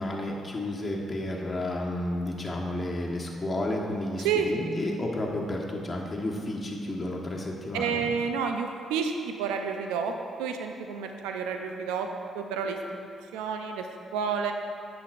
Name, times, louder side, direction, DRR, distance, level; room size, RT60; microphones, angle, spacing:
voice 1, 0.0-8.0, left 1 dB, 35° left, -1 dB, 1.3 m, -31 dB
voice 2, 7.7-10.1 10.4-12.1 12.3-12.8 13.3-13.8 14.1-14.5, right 6 dB, 80° right, 4 dB, 0.5 m, -29 dB
10.0 x 7.0 x 2.5 m, 2.4 s
hypercardioid pair, 45°, 0 cm